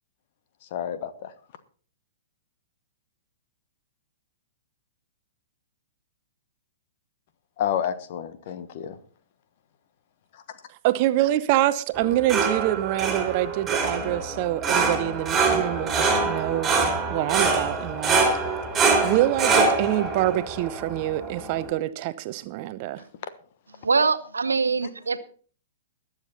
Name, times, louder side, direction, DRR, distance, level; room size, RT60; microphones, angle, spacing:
voice 1, 0.7-1.3 7.6-9.0 10.3-10.4, left 9 dB, 45° left, 1.2 m, -29 dB
voice 2, 10.8-16.7 17.1-18.3 19.0-23.0, right 14 dB, 40° right, 0.8 m, -25 dB
sound 1, 11.9-21.7, right 4 dB, 15° right, 3.2 m, -25 dB
voice 3, 23.8-25.2, right 4 dB, 70° right, 1.0 m, -23 dB
21.0 x 7.4 x 4.1 m
figure-of-eight pair, 110°, 0 cm